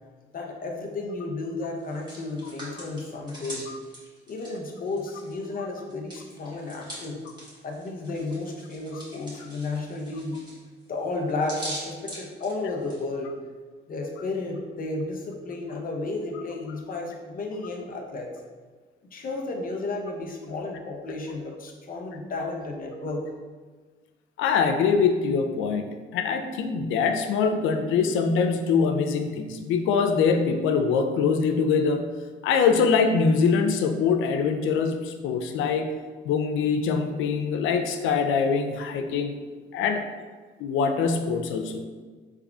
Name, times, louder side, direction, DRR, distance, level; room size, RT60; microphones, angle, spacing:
voice 1, 0.3-3.7 4.3-7.2 7.6-10.4 10.9-13.3 13.9-18.3 19.0-23.2, left 3 dB, 45° left, 0 dB, 0.7 m, -33 dB
Hands, 1.8-5.5 5.7-13.0, right 1 dB, 20° right, 1.3 m, -42 dB
voice 2, 24.4-32.1 32.4-35.9 36.3-39.3 39.7-40.0 40.6-41.9, left 5 dB, 85° left, 6 dB, 0.4 m, -23 dB
3.6 x 3.4 x 2.3 m, 1.4 s
cardioid pair, 90°, 20 cm